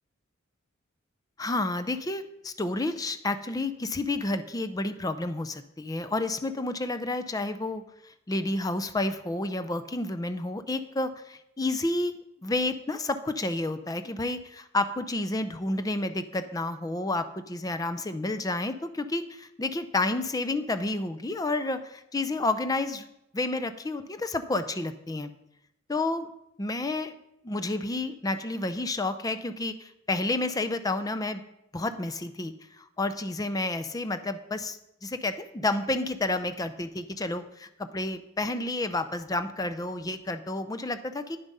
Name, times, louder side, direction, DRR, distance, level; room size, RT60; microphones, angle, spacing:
voice 1, 1.4-12.1 12.4-23.1 23.3-25.3 25.9-26.3 26.6-27.1 27.4-31.4 31.7-41.4, left 2 dB, 20° left, 10 dB, 0.4 m, -30 dB
9.5 x 7.1 x 5.4 m, 0.83 s
head